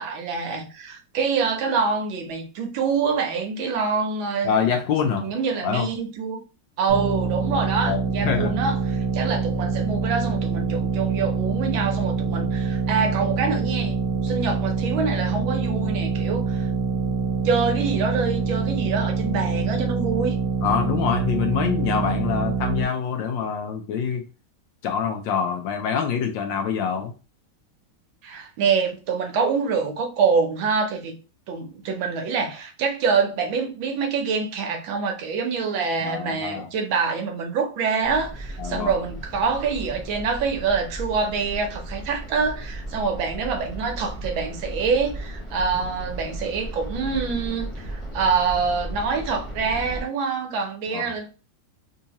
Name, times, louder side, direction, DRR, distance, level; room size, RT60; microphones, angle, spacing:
voice 1, 0.0-4.5 5.1-6.4 6.8-14.0 14.2-16.7 17.4-20.4 28.2-31.2 31.5-51.3, right 5 dB, 70° right, 1.4 m, -25 dB
voice 2, 4.4-5.4 5.6-5.9 7.9-8.5 20.6-24.2 24.8-27.1 36.0-36.7 38.6-38.9 50.9-51.1, left 7 dB, 75° left, 1.2 m, -25 dB
sound 1, 6.9-22.8, right 4 dB, 20° right, 1.0 m, -25 dB
sound 2, 38.0-50.0, right 1 dB, 40° left, 0.4 m, -35 dB
3.6 x 2.8 x 2.8 m
omnidirectional pair, 2.3 m